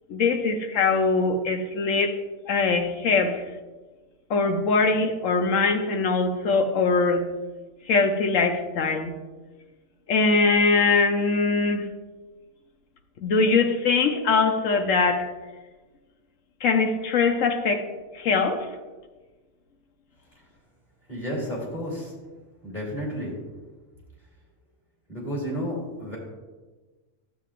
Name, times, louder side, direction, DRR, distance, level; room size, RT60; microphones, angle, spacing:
voice 1, 0.1-2.2 2.5-3.4 4.3-7.3 7.9-9.1 10.1-11.9 13.2-15.3 16.6-17.9 18.1-18.7, left 4 dB, 85° left, 6 dB, 1.2 m, -22 dB
voice 2, 21.1-22.1 22.6-23.4 25.1-26.2, equal, 35° left, -5 dB, 3.2 m, -31 dB
11.5 x 7.9 x 2.5 m, 1.3 s
omnidirectional pair, 1.3 m